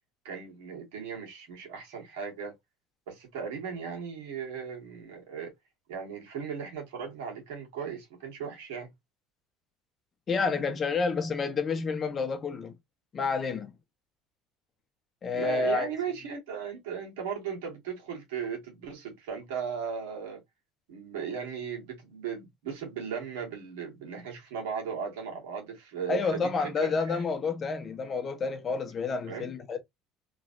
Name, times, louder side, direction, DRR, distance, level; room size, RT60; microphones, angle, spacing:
voice 1, 0.2-2.5 3.1-5.5 5.9-8.9 15.3-20.4 20.9-27.2 29.3-29.5, right 6 dB, 85° right, 1.5 m, -37 dB
voice 2, 10.3-12.7 13.1-13.7 15.2-15.9 26.1-29.8, left 4 dB, 35° left, 0.8 m, -29 dB
3.0 x 2.7 x 2.5 m
supercardioid pair, 95°, 0 cm